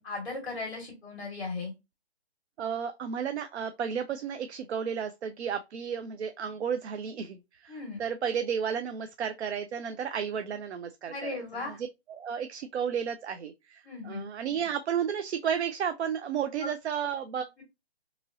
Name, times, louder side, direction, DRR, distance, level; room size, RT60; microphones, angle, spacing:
voice 1, 0.0-1.7 7.7-8.0 11.1-11.8 13.8-14.3 16.6-16.7, left 3 dB, ahead, 0.9 m, -37 dB
voice 2, 2.6-17.6, right 7 dB, 85° right, 0.5 m, -33 dB
2.9 x 2.7 x 2.6 m
hypercardioid pair, 165°, 32 cm